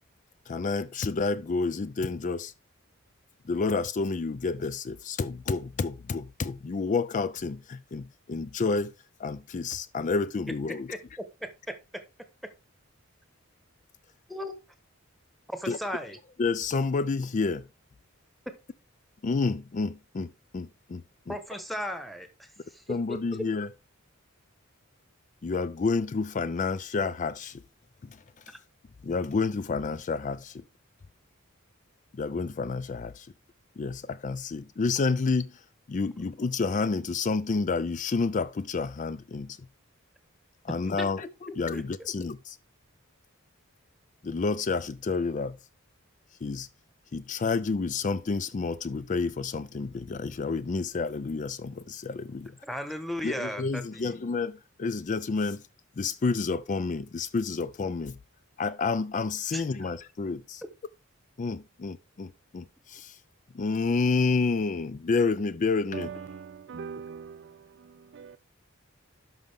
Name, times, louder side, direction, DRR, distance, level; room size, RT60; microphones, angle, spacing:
voice 1, 0.5-2.5 3.5-8.9 9.2-11.0 15.7-15.8 16.4-17.7 19.2-21.4 22.9-23.7 25.4-27.6 28.0-28.2 29.0-30.6 32.1-33.3 33.8-35.6 35.9-39.6 40.6-42.6 44.2-45.6 46.4-46.7 47.1-52.5 53.2-55.6 56.0-58.2 58.6-60.6 61.4-63.2 63.5-66.2, left 4 dB, 35° left, 0.4 m, -29 dB
voice 2, 10.7-12.0 12.4-12.5 14.3-14.5 15.5-16.2 21.3-23.4 41.0-42.1 52.6-54.2 59.5-59.6, equal, ahead, 1.1 m, -37 dB
voice 3, 65.9-67.4 68.1-68.4, right 6 dB, 55° right, 0.4 m, -40 dB
12.0 x 5.3 x 3.5 m
head